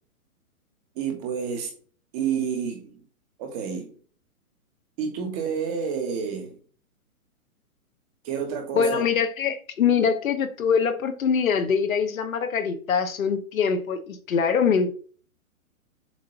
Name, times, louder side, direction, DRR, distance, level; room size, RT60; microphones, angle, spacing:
voice 1, 0.9-1.7 2.1-3.0 3.4-3.9 5.0-6.6 8.2-9.1, right 7 dB, 25° right, 1.4 m, -29 dB
voice 2, 8.7-14.9, left 6 dB, 70° left, 1.2 m, -23 dB
7.5 x 2.6 x 5.5 m
hypercardioid pair, 155°, 43 cm